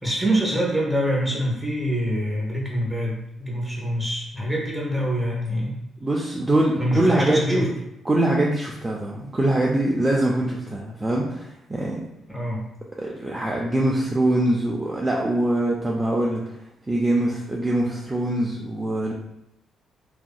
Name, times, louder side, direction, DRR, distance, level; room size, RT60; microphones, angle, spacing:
voice 1, 0.0-5.8 6.8-7.7 12.3-12.6, equal, ahead, -4 dB, 0.9 m, -25 dB
voice 2, 6.0-7.7 8.0-12.0 13.0-16.6 16.9-19.1, right 1 dB, 20° right, -3 dB, 0.4 m, -23 dB
2.7 x 2.5 x 2.3 m, 0.81 s
cardioid pair, 90°, 0 cm